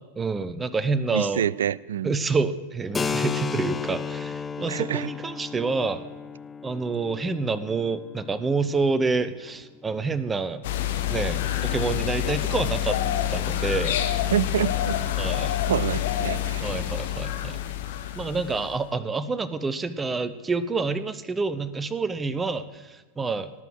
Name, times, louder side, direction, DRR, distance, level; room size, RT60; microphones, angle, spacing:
voice 1, 0.2-1.4 2.0-6.0 6.6-10.6 11.1-13.0 13.3-14.0 15.2-15.6 16.6-17.6 18.2-23.5, right 4 dB, 15° right, 14 dB, 0.9 m, -28 dB
voice 2, 1.1-2.2 4.7-5.1 14.3-15.0 15.6-16.7, right 10 dB, 65° right, 23 dB, 0.4 m, -27 dB
Keyboard (musical), 2.9-10.3, left 6 dB, 15° left, 0.6 m, -34 dB
sound 1, 10.6-18.8, left 12 dB, 55° left, 1.3 m, -27 dB
18.5 x 6.9 x 7.9 m, 1.3 s
figure-of-eight pair, 90°, 0 cm